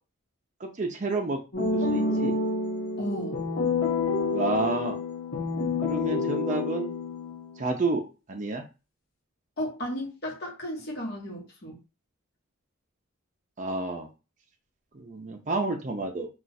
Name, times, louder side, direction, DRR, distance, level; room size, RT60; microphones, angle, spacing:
voice 1, 0.6-1.4 1.7-2.3 4.3-5.0 5.8-6.9 7.6-8.0 8.3-8.6 13.6-14.1 14.9-16.3, right 3 dB, 35° right, 3 dB, 0.5 m, -30 dB
sound 1, 1.5-7.6, left 3 dB, 75° left, 0.9 m, -28 dB
voice 2, 3.0-3.4 9.6-11.8, equal, 50° left, -2 dB, 1.2 m, -34 dB
2.4 x 2.4 x 4.0 m, 0.30 s
head